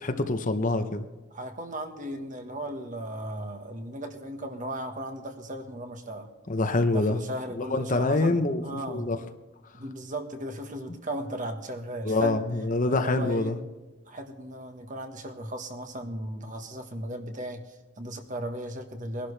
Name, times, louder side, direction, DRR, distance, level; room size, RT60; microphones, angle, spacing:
voice 1, 0.0-1.1 6.5-7.2 7.5-8.6 8.9-9.2 12.0-13.6, left 2 dB, 40° left, 8 dB, 0.8 m, -25 dB
voice 2, 1.3-6.3 6.9-9.1 9.7-12.5 12.9-13.5 14.1-19.3, right 1 dB, 40° right, 6 dB, 1.4 m, -36 dB
22.0 x 11.5 x 3.3 m, 1.2 s
head